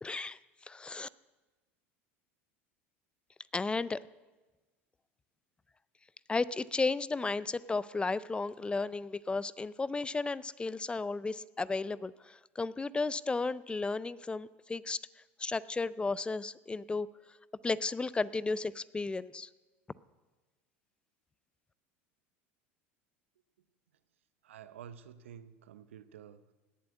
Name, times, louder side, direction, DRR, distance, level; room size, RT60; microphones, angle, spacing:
voice 1, 0.0-1.1 3.5-4.0 6.3-15.0 15.4-17.1 17.6-19.5, left 3 dB, 15° left, 19 dB, 0.4 m, -34 dB
voice 2, 24.4-26.5, right 8 dB, 85° right, 14 dB, 0.7 m, -50 dB
18.0 x 7.6 x 8.2 m, 1.2 s
hypercardioid pair, 85°, 7 cm